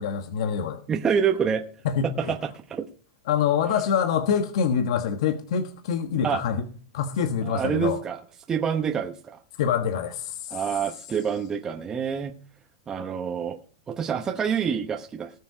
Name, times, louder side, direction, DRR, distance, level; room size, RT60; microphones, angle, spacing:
voice 1, 0.0-0.8 1.8-2.3 3.3-6.7 6.9-8.0 9.6-10.6, left 7 dB, 70° left, 1.4 m, -25 dB
voice 2, 0.9-1.6 2.2-2.4 2.7-2.9 6.2-6.4 7.5-8.2 8.5-9.4 10.5-12.3 12.9-13.6 13.9-15.3, right 7 dB, 20° right, 0.9 m, -26 dB
19.0 x 6.7 x 5.0 m
supercardioid pair, 155°, 3 cm